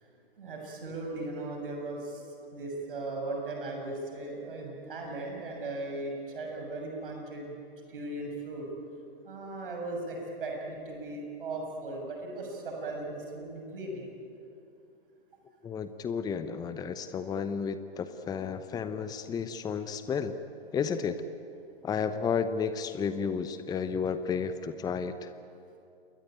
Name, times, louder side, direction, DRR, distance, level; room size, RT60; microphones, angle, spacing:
voice 1, 0.4-2.2 2.5-7.6 7.9-8.7 9.2-14.0, right 2 dB, 60° right, 1 dB, 7.2 m, -37 dB
voice 2, 15.6-20.4 20.7-21.2 21.8-25.3, left 6 dB, 10° left, 11 dB, 1.0 m, -32 dB
28.5 x 22.0 x 9.2 m, 2.6 s
figure-of-eight pair, 110°, 30 cm